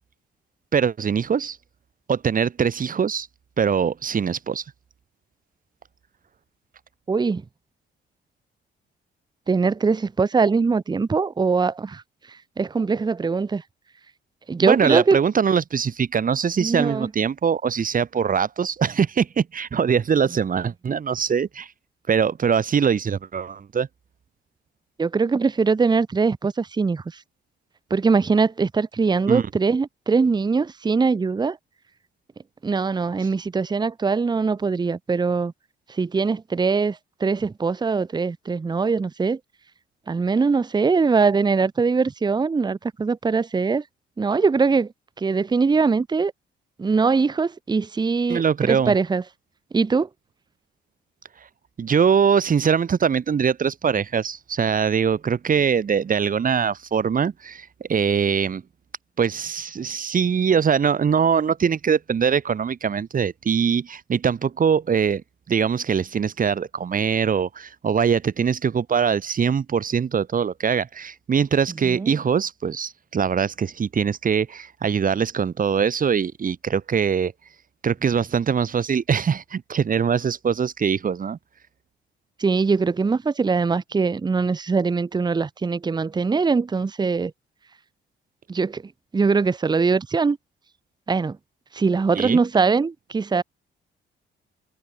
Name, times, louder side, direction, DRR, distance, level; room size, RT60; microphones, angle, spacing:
voice 1, 0.7-1.6 2.1-3.3 3.6-4.6 14.6-21.7 22.1-23.9 29.3-29.4 48.3-48.9 51.8-58.6 59.2-65.2 65.5-77.3 77.8-81.4 92.1-92.4, right 7 dB, 45° right, 2.1 m, -22 dB
voice 2, 7.1-7.4 9.5-12.0 12.6-13.6 14.5-15.2 16.6-17.1 25.0-27.0 27.9-31.6 32.6-35.5 35.9-39.4 40.1-43.8 44.2-44.9 45.2-46.3 46.8-49.2 49.7-50.1 71.8-72.1 82.4-87.3 88.5-88.8 89.1-90.4 91.1-91.4 91.7-93.4, right 4 dB, 20° right, 0.8 m, -22 dB
cardioid pair, 90°, 20 cm